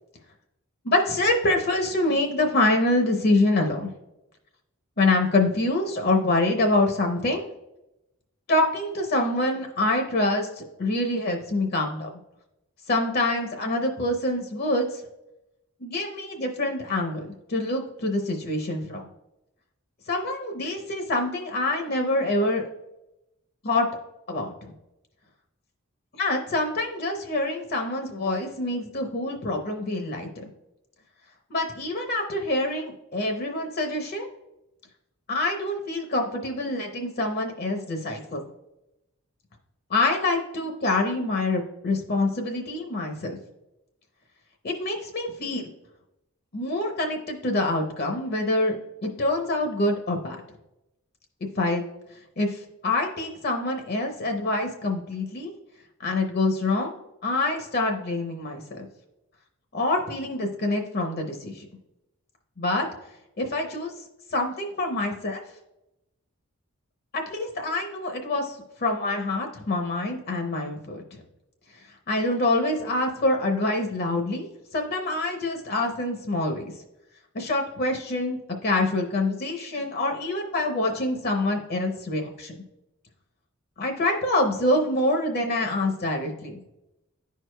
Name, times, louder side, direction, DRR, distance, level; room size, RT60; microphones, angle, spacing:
voice 1, 0.8-3.9 5.0-7.4 8.5-12.1 12.9-15.0 15.8-19.0 20.1-22.7 23.6-23.9 24.3-24.5 26.2-30.4 31.5-34.3 35.3-38.4 39.9-43.4 44.6-45.7 46.5-48.8 49.0-50.4 51.6-51.8 52.4-55.5 56.0-56.9 57.2-58.8 59.7-61.7 62.6-62.9 63.4-63.9 64.3-65.4 67.1-71.2 72.1-74.5 74.7-76.7 77.3-82.5 83.8-86.6, left 2 dB, 45° left, 4 dB, 0.7 m, -26 dB
10.5 x 4.7 x 2.2 m, 0.90 s
head